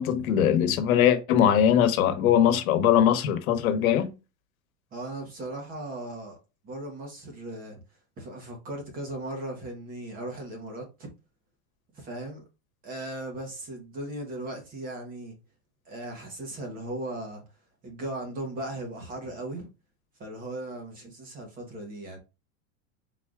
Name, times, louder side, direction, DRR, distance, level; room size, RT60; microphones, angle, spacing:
voice 1, 0.0-4.1, left 9 dB, 90° left, 1.0 m, -21 dB
voice 2, 4.9-6.4 6.6-7.8 8.2-11.1 11.9-12.4 12.8-15.3 15.8-17.4 17.8-19.7 20.2-22.2, right 1 dB, 20° right, 1.1 m, -37 dB
4.5 x 3.9 x 2.4 m
supercardioid pair, 180°, 41 cm